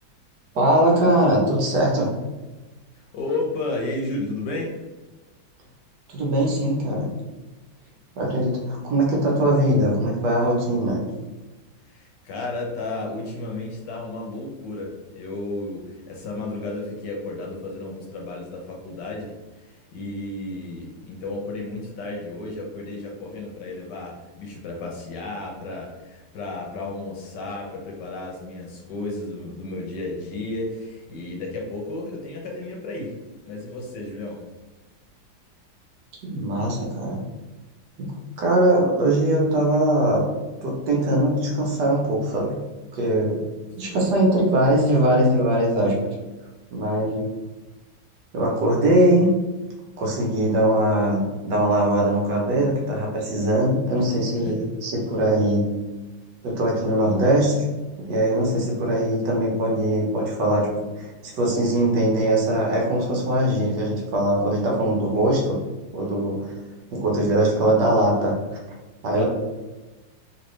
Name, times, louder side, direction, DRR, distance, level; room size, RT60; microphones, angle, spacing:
voice 1, 0.5-2.1 6.1-7.1 8.2-11.0 36.2-37.2 38.0-40.2 40.6-42.6 42.9-43.4 43.8-46.1 46.7-47.2 48.3-49.3 50.0-55.7 56.4-57.6 58.0-60.7 61.0-65.6 65.9-66.6 66.9-68.6 69.0-69.2, right 1 dB, 65° right, -2 dB, 1.3 m, -21 dB
voice 2, 2.9-4.8 11.9-33.2 33.5-34.4 43.8-44.0 54.4-54.6 69.0-69.2, left 2 dB, 70° left, 0 dB, 1.3 m, -33 dB
3.2 x 3.0 x 3.1 m, 1.2 s
omnidirectional pair, 2.1 m